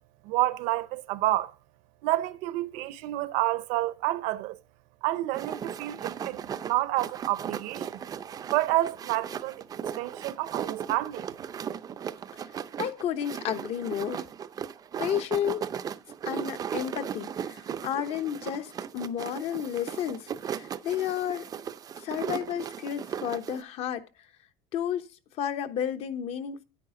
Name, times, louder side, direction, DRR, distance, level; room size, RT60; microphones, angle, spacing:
voice 1, 0.2-1.5 2.0-4.6 5.0-8.0 8.5-9.6 10.0-11.3, right 17 dB, 65° right, 0.8 m, -29 dB
sound 1, 5.3-23.6, right 8 dB, 25° right, 0.5 m, -37 dB
voice 2, 12.8-14.2 15.0-15.7 16.3-21.5 22.0-24.0 24.7-25.1 25.4-26.6, left 9 dB, 45° left, 1.0 m, -32 dB
9.7 x 9.5 x 3.7 m
cardioid pair, 145°, 14 cm